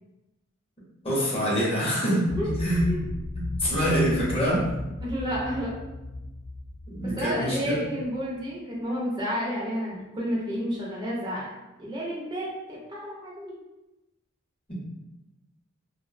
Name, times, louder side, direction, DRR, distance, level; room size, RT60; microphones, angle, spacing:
voice 1, 1.0-2.8 3.3-4.6 6.9-7.8, equal, 30° left, -5 dB, 0.7 m, -25 dB
sound 1, 2.3-8.0, left 1 dB, 85° left, 0.7 m, -35 dB
voice 2, 2.4-3.0 5.0-5.7 7.2-11.5 11.8-12.5 12.9-13.5, equal, 20° right, -5 dB, 0.5 m, -31 dB
2.5 x 2.0 x 2.5 m, 1.0 s
head